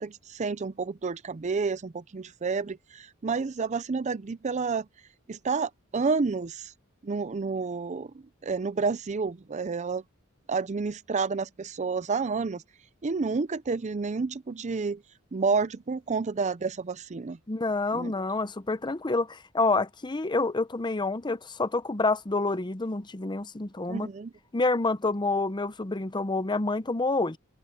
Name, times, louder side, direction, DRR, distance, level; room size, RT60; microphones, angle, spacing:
voice 1, 0.0-4.9 5.3-6.7 7.0-8.1 8.4-10.0 10.5-12.6 13.0-15.0 15.3-17.4 17.9-18.1 23.9-24.3, right 4 dB, 35° right, 0.5 m, -30 dB
voice 2, 17.5-24.1 24.5-27.4, left 3 dB, 20° left, 0.7 m, -28 dB
open air
head